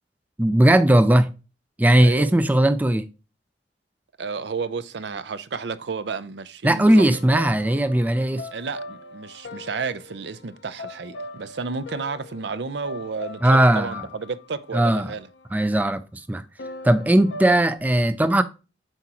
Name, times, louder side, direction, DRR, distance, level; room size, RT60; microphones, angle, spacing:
voice 1, 0.4-1.3 1.8-3.1 6.6-8.5 13.4-14.0 14.7-15.1 15.5-16.4 16.8-18.4, right 1 dB, 10° right, 0.4 m, -18 dB
voice 2, 2.0-2.5 4.2-7.2 8.5-15.3, right 4 dB, 65° right, 0.5 m, -32 dB
sound 1, 7.0-15.8 16.6-17.8, left 2 dB, 70° left, 0.7 m, -41 dB
7.7 x 4.7 x 2.9 m
head